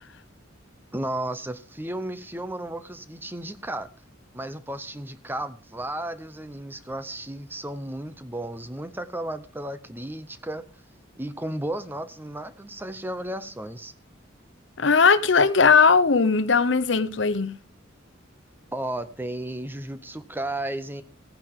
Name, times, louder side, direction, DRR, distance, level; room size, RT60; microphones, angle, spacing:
voice 1, 0.9-3.9 4.3-10.7 11.2-13.9 18.7-21.0, right 1 dB, 10° right, 0.6 m, -34 dB
voice 2, 14.8-17.5, left 5 dB, 65° left, 0.7 m, -19 dB
17.0 x 10.0 x 3.6 m
head